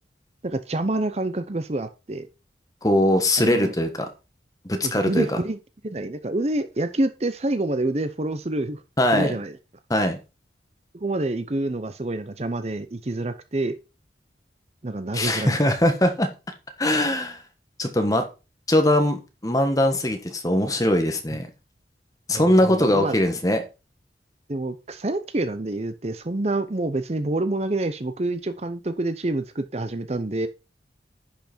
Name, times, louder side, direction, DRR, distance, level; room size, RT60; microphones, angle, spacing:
voice 1, 0.4-2.3 3.4-3.7 4.8-5.6 5.8-8.8 9.1-9.5 10.9-13.8 14.8-15.6 22.3-23.2 24.5-30.5, right 2 dB, 35° right, 0.7 m, -27 dB
voice 2, 2.8-3.9 4.6-5.3 9.0-9.4 9.9-10.2 15.1-16.3 16.8-17.4 17.8-18.2 18.7-21.5 22.3-23.6, left 1 dB, 20° left, 1.4 m, -21 dB
10.5 x 5.9 x 4.4 m
head